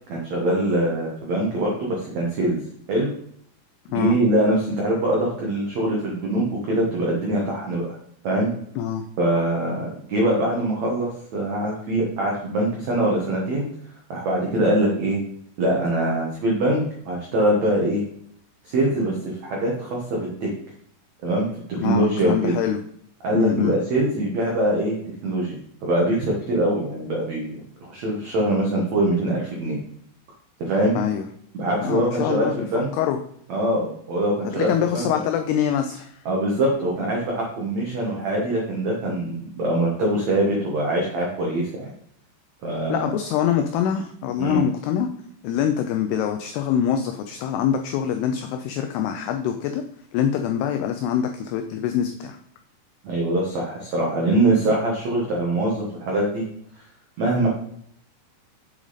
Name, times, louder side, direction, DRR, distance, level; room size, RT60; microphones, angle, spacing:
voice 1, 0.1-2.6 2.9-3.1 3.9-7.9 8.2-8.5 9.2-13.7 14.1-15.2 15.6-18.0 18.6-20.5 21.2-21.5 21.8-22.6 23.2-29.8 30.6-31.0 31.6-32.9 33.5-34.7 34.9-35.2 36.2-41.9 42.6-43.1 44.4-44.6 53.0-56.4 57.2-57.5, right 1 dB, 85° right, -2 dB, 1.5 m, -23 dB
voice 2, 8.8-9.1 21.8-22.8 23.3-23.8 31.0-31.2 31.8-32.7 32.9-33.2 34.6-36.2 42.9-45.1 45.4-49.8 50.1-52.4, left 9 dB, 90° left, 6 dB, 2.3 m, -24 dB
7.7 x 6.2 x 4.0 m, 0.68 s
omnidirectional pair, 5.3 m